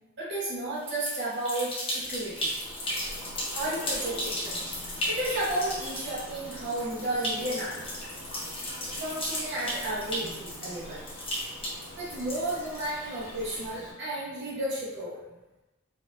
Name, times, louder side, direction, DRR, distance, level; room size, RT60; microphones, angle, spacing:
voice 1, 0.2-2.5 3.5-4.7 5.1-7.9 9.0-11.0 12.0-15.2, right 1 dB, 60° right, -7 dB, 1.1 m, -33 dB
sound 1, 0.8-13.2, left 1 dB, 30° left, 0.9 m, -35 dB
Bird vocalization bird call bird song, 1.9-13.9, equal, 15° right, 1.2 m, -45 dB
4.0 x 2.6 x 2.6 m, 1.0 s
head